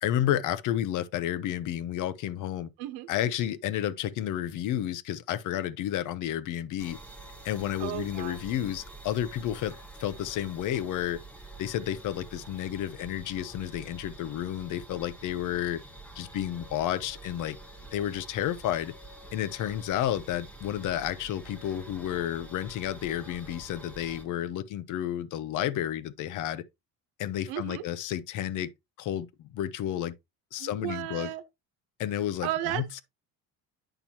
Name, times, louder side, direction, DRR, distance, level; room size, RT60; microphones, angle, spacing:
voice 1, 0.0-2.7 3.1-7.0 7.4-9.7 10.0-11.2 11.6-15.8 16.2-17.6 17.9-18.9 19.3-26.6 27.2-28.7 29.0-30.1 30.5-31.3 32.0-32.5 32.8-32.9, left 11 dB, 55° left, 0.7 m, -31 dB
sound 1, 6.8-24.2, right 2 dB, 5° left, 1.2 m, -47 dB
voice 2, 7.8-8.4 27.5-27.8 30.6-31.4 32.4-33.0, right 14 dB, 90° right, 1.1 m, -34 dB
9.0 x 5.8 x 2.9 m
cardioid pair, 145°, 37 cm